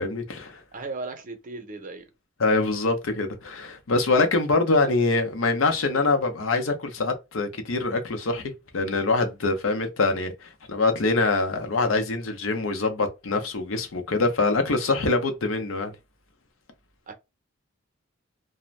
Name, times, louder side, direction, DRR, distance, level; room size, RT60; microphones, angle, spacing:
voice 1, 0.0-0.6 2.4-15.9, left 3 dB, 70° left, 0.7 m, -24 dB
voice 2, 0.7-2.1 17.1-17.2, right 3 dB, 40° right, 0.6 m, -36 dB
2.5 x 2.1 x 3.1 m
head